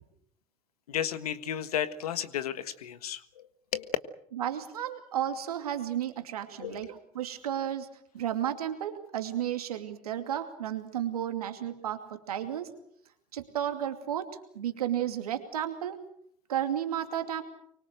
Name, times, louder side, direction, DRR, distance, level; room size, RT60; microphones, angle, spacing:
voice 1, 0.9-4.0 6.6-6.8, left 10 dB, 85° left, 12 dB, 1.5 m, -33 dB
voice 2, 4.3-7.9 8.1-12.7 13.3-16.0 16.5-17.4, right 10 dB, 85° right, 6 dB, 2.7 m, -33 dB
24.5 x 24.5 x 6.7 m, 0.69 s
hypercardioid pair, 70°, 19 cm